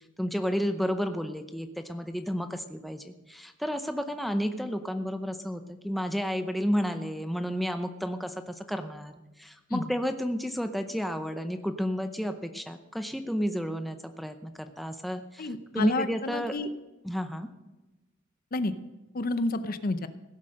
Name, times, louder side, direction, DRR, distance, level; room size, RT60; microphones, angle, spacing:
voice 1, 0.2-16.6 17.0-17.5, equal, ahead, 7 dB, 0.6 m, -31 dB
voice 2, 15.4-16.7 18.5-18.7 19.1-20.1, left 2 dB, 45° left, 11 dB, 0.7 m, -30 dB
16.5 x 7.5 x 6.4 m, 1.1 s
head